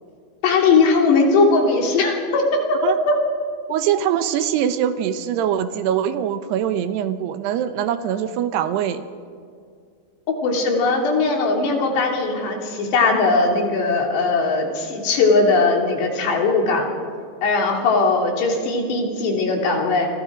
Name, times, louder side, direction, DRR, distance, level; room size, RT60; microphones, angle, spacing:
voice 1, 0.4-3.2 10.4-16.9 17.4-20.1, left 3 dB, 75° left, 1 dB, 5.3 m, -19 dB
voice 2, 3.7-9.0, right 9 dB, 80° right, 10 dB, 3.0 m, -23 dB
29.5 x 22.5 x 5.2 m, 2.2 s
omnidirectional pair, 4.9 m